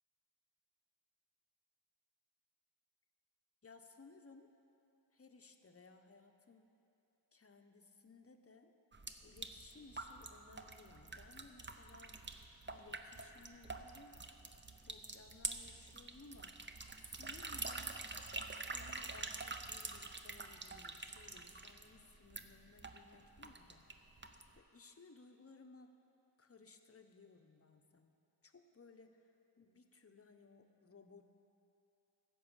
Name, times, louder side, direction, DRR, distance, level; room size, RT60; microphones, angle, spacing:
voice 1, 3.6-4.5 5.1-6.7 7.3-8.7 9.2-12.4 12.7-14.2 14.8-16.6 17.0-18.0 18.6-24.3 24.5-25.9 26.4-28.2 28.4-29.3 29.6-31.2, left 3 dB, 30° left, 6 dB, 0.7 m, -60 dB
sound 1, 8.9-24.6, right 3 dB, 25° right, 0.6 m, -47 dB
15.5 x 5.4 x 7.2 m, 2.9 s
wide cardioid pair, 75°, 45 cm